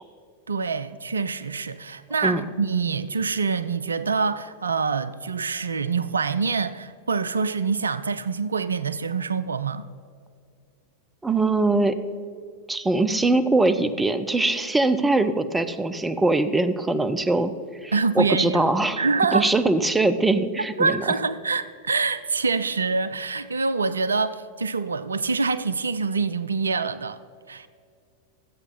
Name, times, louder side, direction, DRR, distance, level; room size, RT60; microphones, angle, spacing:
voice 1, 0.5-9.9 17.9-18.6 19.0-19.5 20.8-27.2 27.5-27.7, right 4 dB, 75° right, 0.4 m, -25 dB
voice 2, 11.2-12.0 12.7-17.5 17.8-19.0 19.3-21.0, right 2 dB, 10° right, 0.6 m, -22 dB
13.5 x 8.2 x 5.3 m
figure-of-eight pair, 90°, 0 cm